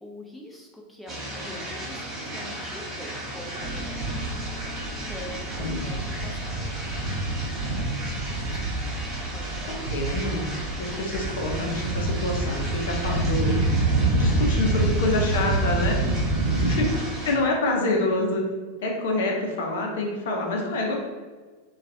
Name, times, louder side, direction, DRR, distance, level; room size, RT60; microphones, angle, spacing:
voice 1, 0.0-4.1 4.9-6.6 7.7-7.8 8.3-8.6 9.3-9.7 16.5-16.8 19.2-19.3, left 1 dB, ahead, -2 dB, 0.5 m, -44 dB
sound 1, 1.1-17.3, right 1 dB, 20° right, 1.0 m, -36 dB
Piano, 3.6-13.7, left 2 dB, 25° left, 1.0 m, -48 dB
sound 2, 3.6-16.9, right 2 dB, 60° right, 0.6 m, -27 dB
voice 2, 9.9-10.5 10.8-13.6 14.2-16.2 16.6-16.9 17.2-18.4 18.8-21.0, left 2 dB, 55° left, 0 dB, 0.6 m, -27 dB
3.9 x 2.3 x 2.6 m, 1.4 s
figure-of-eight pair, 90°, 0 cm